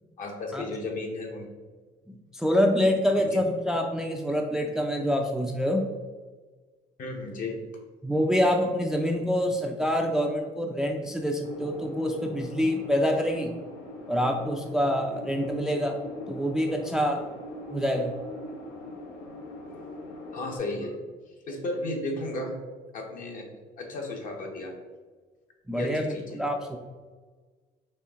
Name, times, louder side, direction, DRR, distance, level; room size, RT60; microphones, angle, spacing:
voice 1, 0.2-1.5 3.1-3.3 7.0-7.6 20.3-21.0 21.5-22.6 22.9-23.5 23.8-24.7 25.7-26.4, left 2 dB, 55° left, 2 dB, 1.0 m, -34 dB
voice 2, 2.1-5.9 8.0-13.5 14.1-16.0 16.3-17.2 17.7-18.1 25.7-26.8, equal, 5° right, 3 dB, 0.4 m, -26 dB
sound 1, 11.4-20.6, left 1 dB, 85° left, 0.8 m, -41 dB
4.4 x 3.4 x 3.5 m, 1.4 s
cardioid pair, 110°, 17 cm